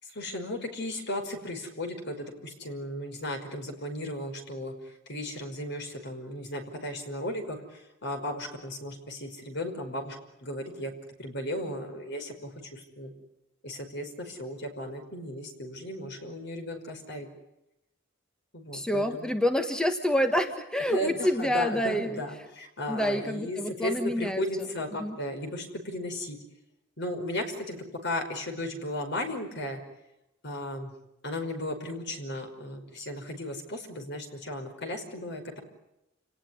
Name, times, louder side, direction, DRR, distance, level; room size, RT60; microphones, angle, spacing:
voice 1, 0.0-10.2 10.4-10.9 11.2-13.1 13.6-17.3 18.5-19.3 20.9-26.4 27.0-27.8 28.0-29.8 30.4-30.9 31.2-35.6, left 1 dB, 60° left, 5 dB, 5.4 m, -35 dB
voice 2, 18.7-22.2 22.9-24.4 25.0-25.2, left 1 dB, 5° left, 7 dB, 1.5 m, -27 dB
29.0 x 19.0 x 10.0 m, 0.88 s
head